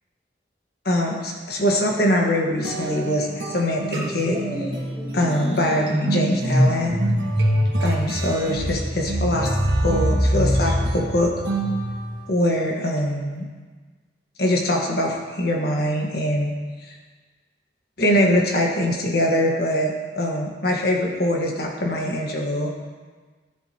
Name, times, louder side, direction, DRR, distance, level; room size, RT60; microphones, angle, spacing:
voice 1, 0.8-4.4 5.1-7.0 7.8-9.6 9.8-11.3 12.3-13.5 14.4-16.5 16.8-16.9 18.0-22.7, left 1 dB, 65° left, 0 dB, 1.5 m, -23 dB
sound 1, 2.6-12.3, right 2 dB, 85° right, 1.4 m, -31 dB
sound 2, 2.8-3.1 3.4-12.2, equal, 15° left, 2.5 m, -24 dB
13.0 x 8.1 x 3.0 m, 1.4 s
head